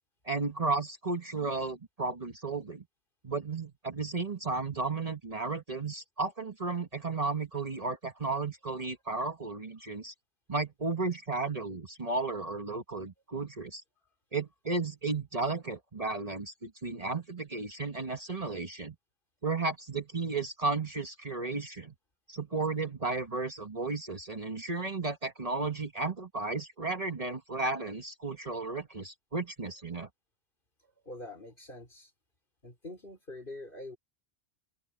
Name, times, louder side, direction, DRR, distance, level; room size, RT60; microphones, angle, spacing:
voice 1, 0.2-2.8 3.2-10.1 10.5-13.8 14.3-18.9 19.4-21.9 22.3-30.1, right 3 dB, 35° right, 1.5 m, -34 dB
voice 2, 31.0-32.1 32.6-34.0, left 2 dB, 55° left, 4.3 m, -45 dB
omnidirectional pair, 1.1 m